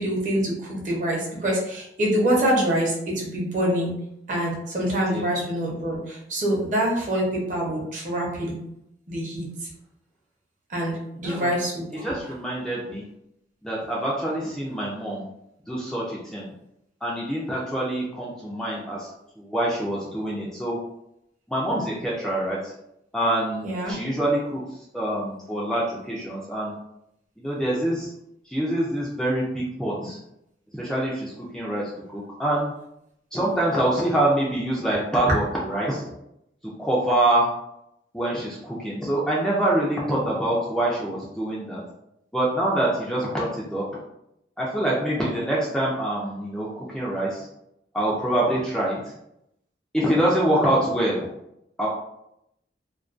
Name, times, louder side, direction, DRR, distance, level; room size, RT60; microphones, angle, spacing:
voice 1, 0.0-3.9 4.3-8.5 9.1-9.5 10.7-12.1 23.6-24.0, right 1 dB, 45° right, -3 dB, 0.7 m, -25 dB
voice 2, 12.0-13.0 13.6-15.3 15.7-16.5 17.0-19.1 19.4-20.8 21.5-22.7 23.1-24.6 24.9-26.7 27.4-28.1 28.5-30.2 30.7-32.7 33.3-36.0 36.8-37.5 38.1-41.8 42.3-43.8 44.6-47.5 47.9-49.1 49.9-51.3 51.8-51.9, right 1 dB, 5° left, -6 dB, 0.3 m, -25 dB
2.3 x 2.2 x 2.4 m, 0.81 s
head